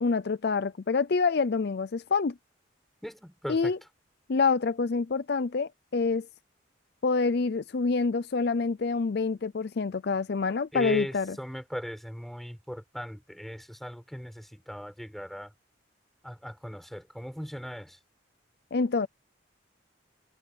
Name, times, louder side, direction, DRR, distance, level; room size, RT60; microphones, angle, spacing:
voice 1, 0.0-2.3 3.5-3.8 4.3-6.3 7.0-11.3 18.7-19.1, left 4 dB, 55° left, 0.5 m, -27 dB
voice 2, 3.0-3.8 10.7-15.5 16.2-18.0, equal, ahead, 7.2 m, -38 dB
head